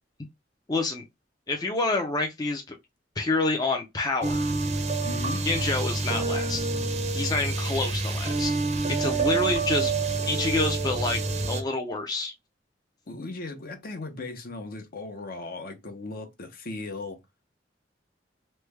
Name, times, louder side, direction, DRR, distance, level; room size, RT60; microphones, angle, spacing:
voice 1, 0.7-1.0 1.5-2.8 3.2-4.5 5.4-6.6 7.1-8.6 8.9-9.9 10.2-11.2 11.5-12.3, left 3 dB, 20° left, 0.5 m, -28 dB
sound 1, 4.2-11.6, right 3 dB, 40° right, 0.6 m, -27 dB
voice 2, 5.0-5.4 9.3-9.4 13.1-17.2, left 2 dB, 50° left, 0.8 m, -37 dB
3.2 x 2.2 x 3.3 m
head